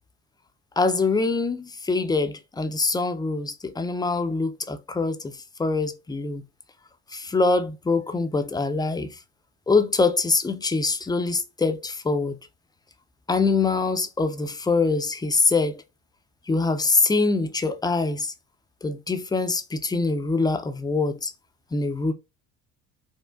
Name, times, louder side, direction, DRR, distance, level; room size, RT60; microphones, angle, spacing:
voice 1, 0.8-5.3 5.6-6.4 7.1-9.1 9.7-12.4 13.3-15.8 16.5-18.3 18.8-21.3 21.7-22.1, left 3 dB, 10° left, 0.4 m, -24 dB
4.4 x 2.4 x 2.3 m
hypercardioid pair, 70°, 43 cm